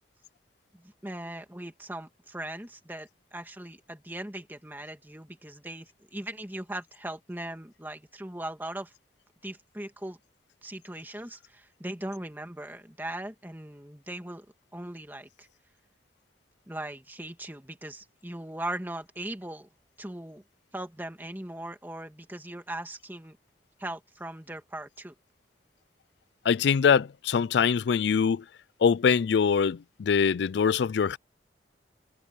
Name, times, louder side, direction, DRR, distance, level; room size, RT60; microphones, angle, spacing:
voice 1, 0.7-8.9 9.4-10.2 10.6-14.5 14.7-15.5 16.7-19.7 20.0-20.4 20.7-23.4 23.8-25.1, right 1 dB, 10° right, 1.8 m, -39 dB
voice 2, 26.5-28.4 28.8-31.2, left 6 dB, 65° left, 0.4 m, -23 dB
head